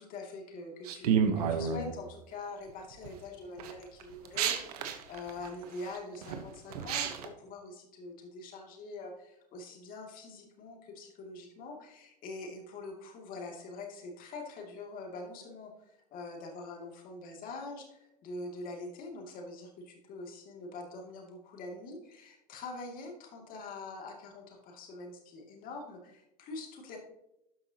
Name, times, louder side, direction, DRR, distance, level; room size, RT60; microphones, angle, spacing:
voice 1, 0.0-27.0, left 2 dB, 45° left, 1 dB, 2.5 m, -44 dB
sound 1, 0.8-1.9 2.7-3.1 3.6-7.3, right 7 dB, 80° right, 1.1 m, -31 dB
12.0 x 5.8 x 2.9 m, 0.86 s
supercardioid pair, 110°, 19 cm